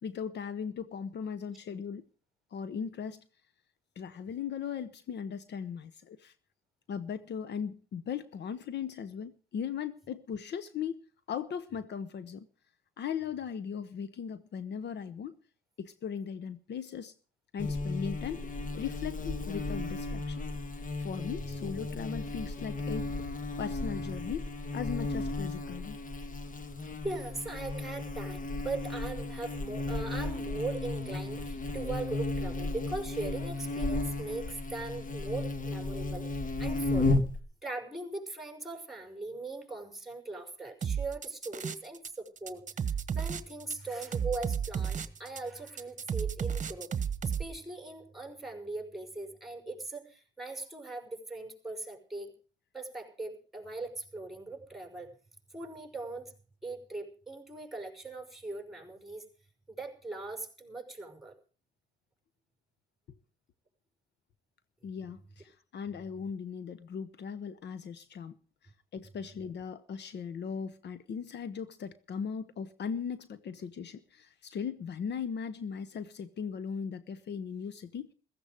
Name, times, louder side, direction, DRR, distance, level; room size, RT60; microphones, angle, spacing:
voice 1, 0.0-2.0 2.5-3.2 4.0-6.3 6.9-11.0 11.3-12.5 13.0-15.4 15.8-17.1 17.5-18.5 18.7-20.4 21.0-23.2 23.6-26.0 64.8-68.4 68.9-78.1, left 7 dB, 60° left, 1.0 m, -38 dB
Buzz, 17.6-37.4, left 2 dB, 40° left, 1.6 m, -34 dB
voice 2, 27.0-37.1 37.6-52.3 52.7-55.1 55.5-56.3 56.6-59.3 59.7-61.3, right 3 dB, ahead, 5.3 m, -40 dB
sound 1, 40.8-42.1 42.4-47.4, right 7 dB, 40° right, 1.4 m, -32 dB
15.5 x 15.0 x 5.1 m
cardioid pair, 90°, 20 cm